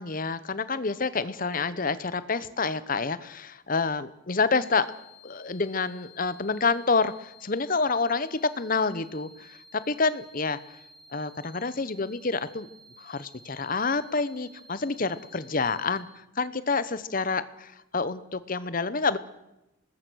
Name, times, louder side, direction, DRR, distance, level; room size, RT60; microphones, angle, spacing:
voice 1, 0.0-4.9 5.2-10.6 11.1-12.7 13.0-19.2, left 4 dB, 45° left, 15 dB, 0.9 m, -28 dB
sound 1, 4.6-16.0, left 2 dB, 5° left, 4.0 m, -53 dB
25.0 x 20.0 x 6.3 m, 0.94 s
head